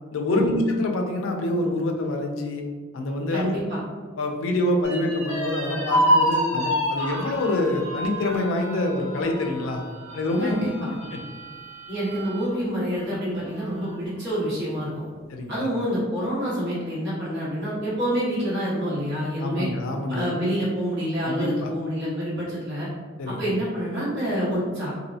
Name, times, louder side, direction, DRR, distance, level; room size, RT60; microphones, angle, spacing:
voice 1, 0.1-2.6 2.9-3.5 4.2-9.8 10.1-10.5 11.1-11.2 15.3-15.7 19.4-20.3 21.2-21.7 23.2-23.5, left 1 dB, 75° left, 2 dB, 0.4 m, -26 dB
voice 2, 3.3-3.8 10.4-10.9 11.9-15.1 15.5-19.7 20.1-22.9 23.2-24.9, equal, 60° right, -8 dB, 1.3 m, -27 dB
sound 1, 4.8-12.5 12.9-13.0 13.4-14.1, equal, 30° right, 1.2 m, -28 dB
2.7 x 2.0 x 2.6 m, 1.5 s
head